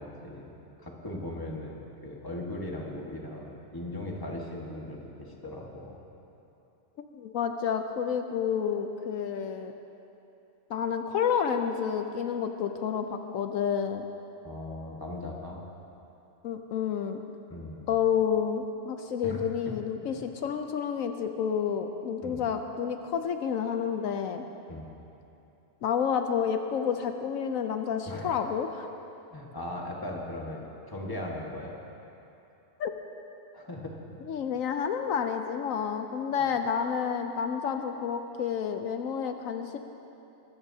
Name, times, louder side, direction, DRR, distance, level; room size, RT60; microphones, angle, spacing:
voice 1, 0.0-6.0 14.4-15.6 17.5-18.0 19.2-19.5 22.2-22.5 24.7-24.9 28.1-28.3 29.3-31.8 33.5-34.0, left 1 dB, 15° left, -2 dB, 1.5 m, -38 dB
voice 2, 7.2-9.7 10.7-14.0 16.4-17.2 17.9-24.4 25.8-28.9 32.8-32.9 34.3-39.8, left 7 dB, 80° left, 6 dB, 1.1 m, -29 dB
23.0 x 13.5 x 2.8 m, 2.9 s
omnidirectional pair, 1.4 m